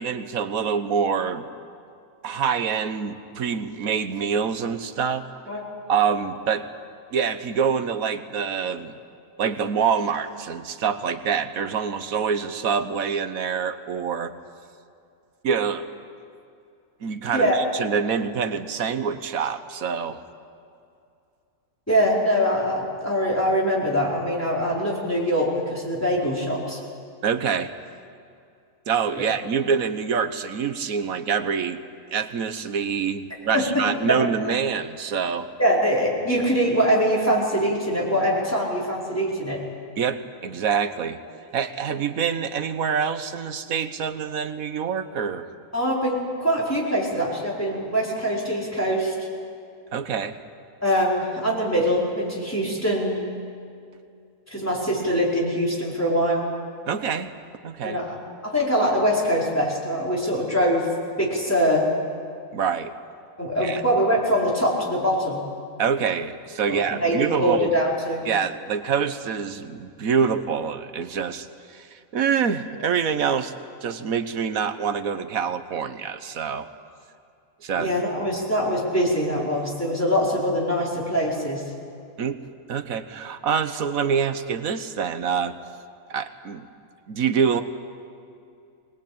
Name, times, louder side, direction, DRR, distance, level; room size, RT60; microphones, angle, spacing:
voice 1, 0.0-1.5 2.2-5.3 5.9-6.7 7.1-8.9 9.4-14.3 15.4-15.9 17.0-20.2 27.2-27.7 28.9-31.8 32.1-35.5 40.0-41.2 41.5-45.5 49.9-50.4 56.9-57.3 57.6-58.0 62.5-62.9 63.6-63.8 65.8-67.7 68.2-73.5 73.8-76.7 77.6-77.9 82.2-82.4 82.7-85.6 86.1-86.7 87.1-87.6, right 6 dB, 80° right, 11 dB, 1.5 m, -26 dB
voice 2, 21.9-26.8 33.5-34.2 35.6-39.6 45.7-49.1 50.8-53.2 54.5-56.5 57.8-58.1 58.4-60.9 61.2-61.9 63.4-65.4 66.7-68.2 77.8-81.6, equal, 10° left, -4 dB, 4.8 m, -23 dB
23.0 x 19.5 x 8.8 m, 2.5 s
omnidirectional pair, 1.5 m